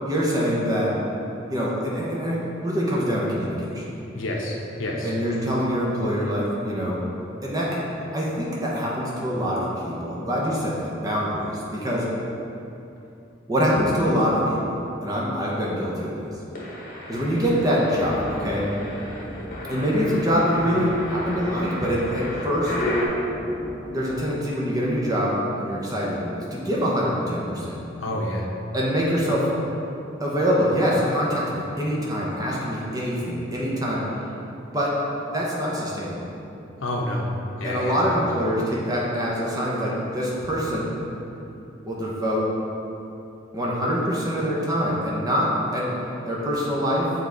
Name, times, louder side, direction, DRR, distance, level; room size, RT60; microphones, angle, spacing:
voice 1, 0.0-1.0 1.5-3.9 5.0-7.0 7.4-7.8 8.1-12.1 13.5-16.3 17.1-18.7 19.7-22.7 23.8-26.2 26.5-27.8 28.7-29.5 30.2-34.0 34.7-34.9 35.3-36.2 37.6-40.9 41.8-42.5 43.5-45.9 46.2-47.1, equal, 20° right, -5 dB, 0.8 m, -24 dB
voice 2, 4.1-5.1 28.0-28.5 36.8-37.3 37.6-38.0, left 1 dB, 85° left, -1 dB, 0.8 m, -28 dB
sound 1, 16.5-23.1, left 1 dB, 40° left, 1.0 m, -34 dB
sound 2, 17.3-24.1, equal, 10° left, 0.8 m, -38 dB
7.1 x 3.5 x 3.8 m, 2.8 s
head